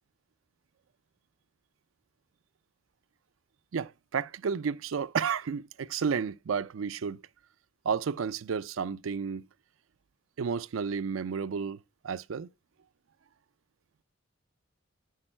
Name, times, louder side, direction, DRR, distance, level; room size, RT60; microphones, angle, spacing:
voice 1, 3.7-7.2 7.9-9.5 10.4-11.8 12.0-12.5, right 6 dB, 85° right, 0.4 m, -31 dB
9.8 x 6.5 x 4.3 m
head